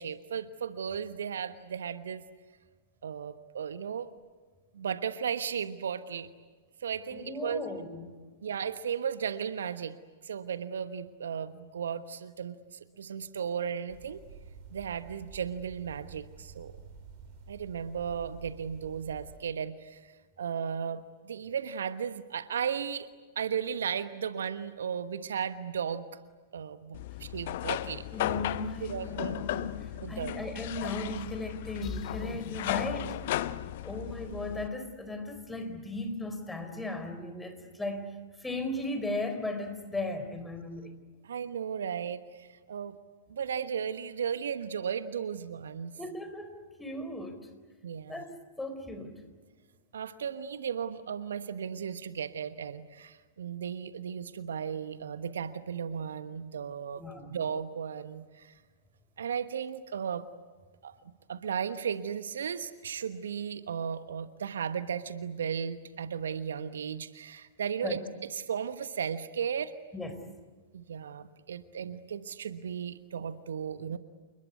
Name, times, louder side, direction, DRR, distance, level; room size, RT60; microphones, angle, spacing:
voice 1, 0.0-2.2 3.0-4.1 4.7-6.3 6.8-7.6 8.4-10.0 10.2-14.2 14.7-16.7 17.5-20.1 20.4-23.1 23.3-26.1 26.5-28.0 28.8-29.4 30.0-30.4 41.2-42.9 43.3-45.9 47.8-48.2 49.9-57.0 57.3-58.5 59.2-60.3 60.8-60.9 61.3-68.0 68.3-69.7 70.7-74.0, right 7 dB, 65° right, 12 dB, 1.2 m, -35 dB
voice 2, 7.1-8.2 28.1-33.2 33.8-40.9 46.0-47.5 48.1-48.3 48.6-49.2 57.0-57.3 67.8-68.0 69.9-70.2, left 2 dB, 5° left, 7 dB, 4.1 m, -37 dB
sound 1, 13.9-19.4, right 5 dB, 40° right, 6.0 m, -50 dB
sound 2, 26.9-34.7, left 14 dB, 50° left, 0.9 m, -35 dB
sound 3, 31.8-35.5, left 5 dB, 25° left, 2.2 m, -46 dB
29.0 x 21.0 x 9.6 m, 1.4 s
figure-of-eight pair, 105°, 0 cm